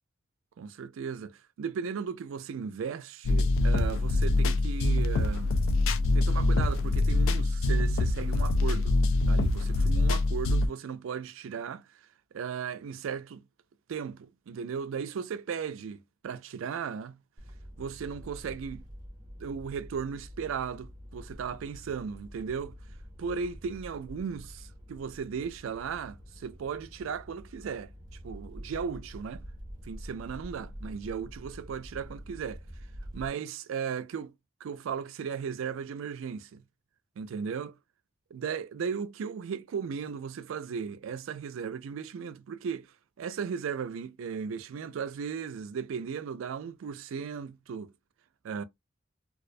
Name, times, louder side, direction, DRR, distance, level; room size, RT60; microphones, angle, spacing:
voice 1, 0.6-5.6 6.1-9.0 9.3-11.9 12.3-13.4 13.9-17.2 17.8-18.8 19.4-22.8 23.2-27.9 28.2-29.4 29.9-32.6 33.1-34.3 34.6-36.6 37.2-37.8 38.3-42.9 43.2-47.9 48.4-48.6, right 6 dB, 75° right, 0.3 m, -36 dB
sound 1, 3.2-10.7, left 2 dB, 80° left, 0.4 m, -25 dB
sound 2, 17.4-33.3, equal, 20° right, 0.5 m, -46 dB
2.3 x 2.1 x 2.5 m
head